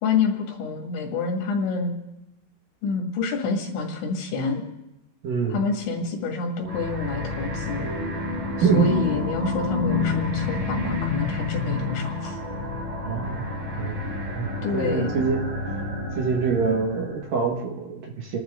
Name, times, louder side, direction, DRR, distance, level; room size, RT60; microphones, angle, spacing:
voice 1, 0.0-1.9 2.8-4.6 5.5-7.9 8.6-12.4 14.6-15.2, left 4 dB, 80° left, 1 dB, 4.7 m, -27 dB
voice 2, 5.2-5.6 8.6-8.9 13.0-13.5 13.8-14.0 14.3-15.4 16.2-18.4, right 5 dB, 55° right, 0 dB, 3.2 m, -25 dB
sound 1, 6.6-17.3, left 3 dB, 20° right, 4.3 m, -29 dB
30.0 x 12.0 x 3.9 m, 0.90 s
omnidirectional pair, 5.2 m